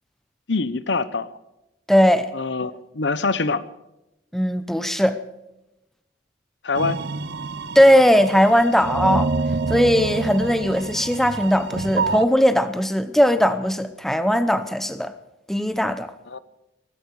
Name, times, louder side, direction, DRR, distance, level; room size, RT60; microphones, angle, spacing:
voice 1, 0.5-1.4 2.3-3.6 6.6-7.0 16.3-16.4, left 4 dB, 65° left, 0.8 m, -24 dB
voice 2, 1.9-2.3 4.3-5.2 7.7-9.3 9.7-15.1 15.5-16.1, equal, ahead, 0.8 m, -18 dB
sound 1, 6.7-12.2, right 4 dB, 60° right, 0.8 m, -27 dB
17.5 x 16.0 x 4.8 m
head